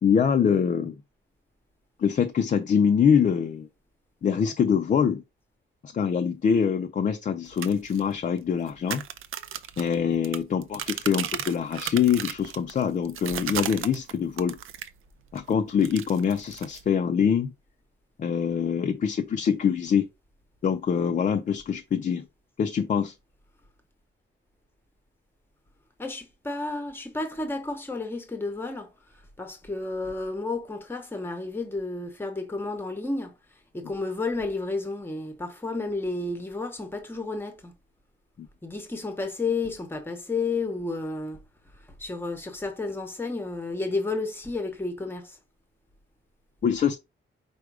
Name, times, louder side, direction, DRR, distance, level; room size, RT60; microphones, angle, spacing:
voice 1, 0.0-1.0 2.0-3.7 4.2-5.2 5.8-9.0 9.8-14.6 15.3-17.5 18.2-20.1 20.6-22.3 22.6-23.1 38.4-38.5 46.6-47.0, left 7 dB, 40° left, 0.4 m, -24 dB
sound 1, 7.5-15.0 15.3-16.9, right 10 dB, 80° right, 0.5 m, -36 dB
voice 2, 26.0-28.9 29.4-33.4 33.7-37.7 38.6-41.4 42.0-45.4, left 3 dB, 10° left, 0.8 m, -31 dB
4.8 x 2.2 x 4.6 m
wide cardioid pair, 175°, 21 cm